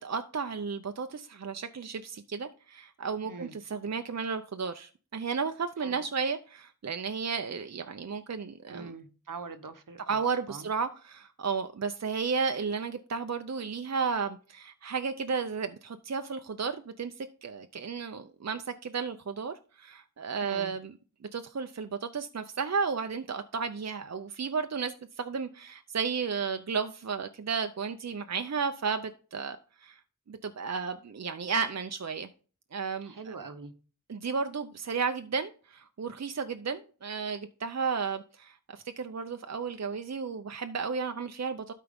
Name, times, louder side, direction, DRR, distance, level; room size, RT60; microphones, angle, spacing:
voice 1, 0.0-8.9 10.1-20.9 21.3-30.0 30.3-32.3 32.7-33.3 34.1-41.7, right 5 dB, 55° right, 0.6 m, -33 dB
voice 2, 3.2-3.5 5.8-6.0 8.7-10.2 10.5-10.7 20.4-20.8 33.0-33.7, right 4 dB, 75° right, 1.0 m, -43 dB
12.5 x 4.6 x 3.5 m
wide cardioid pair, 45°, 32 cm